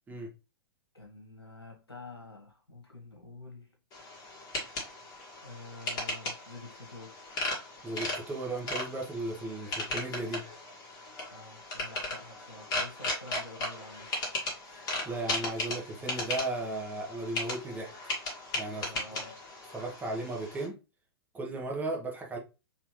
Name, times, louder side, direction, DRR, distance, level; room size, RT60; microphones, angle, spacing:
voice 1, 0.9-3.7 5.4-7.3 11.3-14.1 18.7-19.3, left 2 dB, 90° left, 1.6 m, -48 dB
sound 1, 3.9-20.7, left 2 dB, 30° left, 2.0 m, -37 dB
voice 2, 7.8-10.5 14.7-17.9 18.5-18.9 19.7-20.8 21.3-22.4, right 2 dB, 15° right, 1.2 m, -36 dB
4.3 x 3.3 x 3.1 m
figure-of-eight pair, 105°, 13 cm